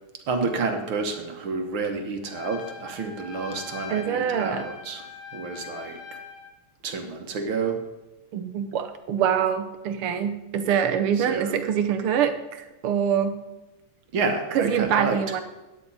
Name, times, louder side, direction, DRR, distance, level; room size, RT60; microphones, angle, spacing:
voice 1, 0.3-5.0 5.3-6.0 6.8-7.8 11.2-11.5 14.1-15.4, right 4 dB, 75° right, 5 dB, 2.1 m, -29 dB
Trumpet, 2.3-6.5, left 6 dB, 50° left, 2.2 m, -41 dB
voice 2, 3.9-4.7 8.3-13.4 14.5-15.4, right 8 dB, 90° right, 8 dB, 1.8 m, -25 dB
13.5 x 9.4 x 4.2 m, 1.1 s
omnidirectional pair, 2.3 m